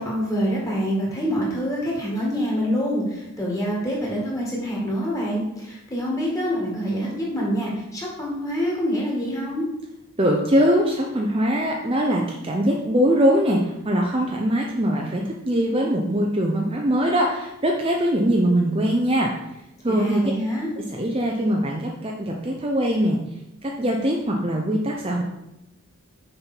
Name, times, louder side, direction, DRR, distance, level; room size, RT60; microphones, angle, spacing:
voice 1, 0.0-9.6 19.9-20.7, equal, 15° left, -4 dB, 2.1 m, -26 dB
voice 2, 10.2-19.3 19.8-20.2 20.8-23.2 23.6-25.2, equal, 25° right, 0 dB, 0.6 m, -22 dB
6.7 x 5.4 x 4.5 m, 0.88 s
head